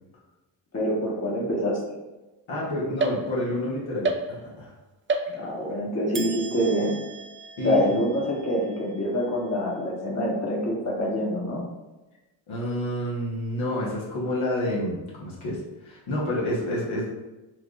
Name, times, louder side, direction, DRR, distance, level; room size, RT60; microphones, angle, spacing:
voice 1, 0.7-1.8 5.3-7.0 7.6-11.6, equal, 30° left, -3 dB, 1.3 m, -26 dB
voice 2, 2.5-4.7 7.6-8.0 12.5-17.1, left 1 dB, 65° left, -5 dB, 1.4 m, -29 dB
sound 1, 3.0-3.6 4.0-4.7 5.1-5.7 6.1-9.6, right 3 dB, 25° right, 0.4 m, -33 dB
6.0 x 2.3 x 2.4 m, 1.1 s
supercardioid pair, 50°, 50 cm